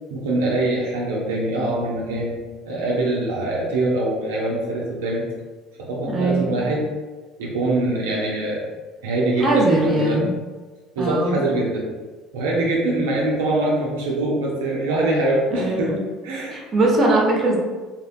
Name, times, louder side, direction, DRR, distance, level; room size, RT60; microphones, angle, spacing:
voice 1, 0.1-2.4 2.7-5.3 5.8-6.9 7.4-8.7 9.0-10.2 11.0-11.9 12.3-16.0 16.2-16.6, right 2 dB, 85° right, -4 dB, 0.4 m, -23 dB
voice 2, 6.1-6.6 9.4-10.3 11.0-11.4 15.5-16.0 16.5-17.6, right 2 dB, 40° right, -2 dB, 0.7 m, -20 dB
2.7 x 2.1 x 2.6 m, 1.3 s
hypercardioid pair, 75°, 0 cm